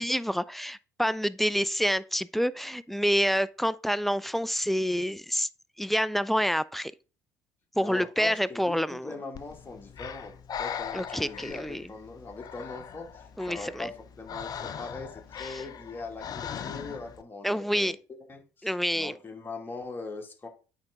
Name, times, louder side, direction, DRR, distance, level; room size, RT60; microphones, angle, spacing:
voice 1, 0.0-5.5 5.8-6.9 7.8-9.1 10.9-11.8 13.4-13.9 17.4-18.0 18.6-19.1, equal, ahead, 0.4 m, -27 dB
voice 2, 7.8-18.0 18.3-20.5, left 3 dB, 20° left, 2.2 m, -41 dB
Breathing, 9.3-17.2, left 8 dB, 40° left, 0.7 m, -40 dB
8.7 x 3.9 x 3.7 m
hypercardioid pair, 60°, 10 cm